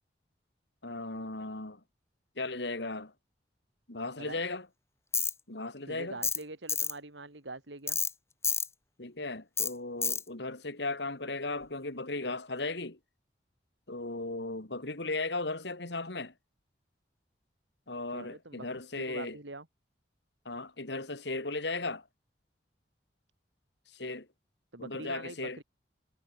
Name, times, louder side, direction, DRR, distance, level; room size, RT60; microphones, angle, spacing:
voice 1, 0.8-1.8 2.4-3.1 3.9-4.7 5.5-6.2 9.0-13.0 13.9-16.3 17.9-19.4 20.5-22.0 23.9-24.3 24.8-25.6, left 3 dB, 70° left, 2.5 m, -36 dB
Tools, 5.1-5.3 6.2-6.4 6.7-6.9 7.9-8.1 8.4-8.7 9.6-9.7 10.0-10.2, left 6 dB, 15° left, 2.4 m, -29 dB
voice 2, 5.8-8.0 18.1-18.7 19.0-19.7 24.7-25.6, right 2 dB, 85° right, 3.2 m, -44 dB
head